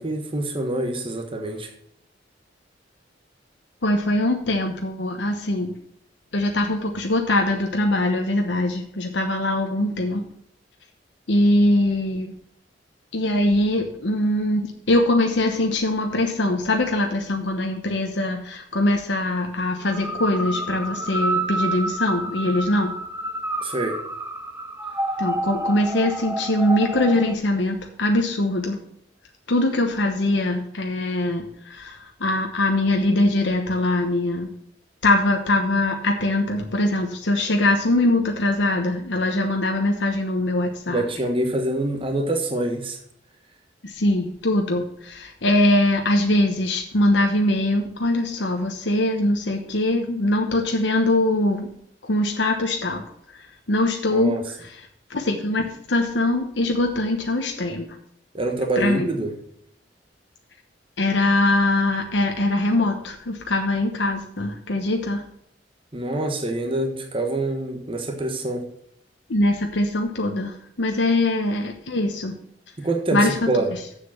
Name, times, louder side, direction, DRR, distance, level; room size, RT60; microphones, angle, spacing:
voice 1, 0.0-1.7 23.6-24.0 40.9-43.0 54.1-54.4 58.3-59.3 65.9-68.6 72.8-73.7, right 2 dB, 30° right, 3 dB, 1.3 m, -25 dB
voice 2, 3.8-5.7 6.3-10.2 11.3-12.3 13.1-22.9 25.2-28.8 29.5-34.5 35.0-41.0 43.8-51.7 52.0-57.9 58.8-59.1 61.0-65.2 69.3-72.3 73.1-73.6, left 1 dB, 70° left, 3 dB, 1.0 m, -22 dB
sound 1, 19.8-27.3, right 1 dB, 15° right, 0.9 m, -29 dB
7.6 x 6.7 x 7.3 m, 0.69 s
head